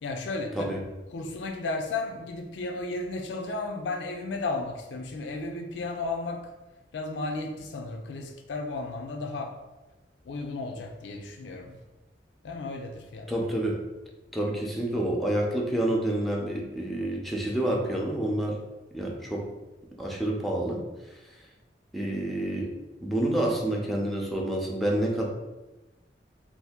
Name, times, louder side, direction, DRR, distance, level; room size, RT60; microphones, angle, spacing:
voice 1, 0.0-0.8 1.1-6.5 6.9-9.5 10.3-11.8 12.4-13.3, left 3 dB, 85° left, 4 dB, 0.4 m, -34 dB
voice 2, 13.3-13.8 14.3-18.6 18.9-19.5 20.0-20.8 21.9-22.7 23.0-25.3, right 1 dB, ahead, -1 dB, 0.5 m, -28 dB
2.7 x 2.6 x 3.5 m, 1.1 s
head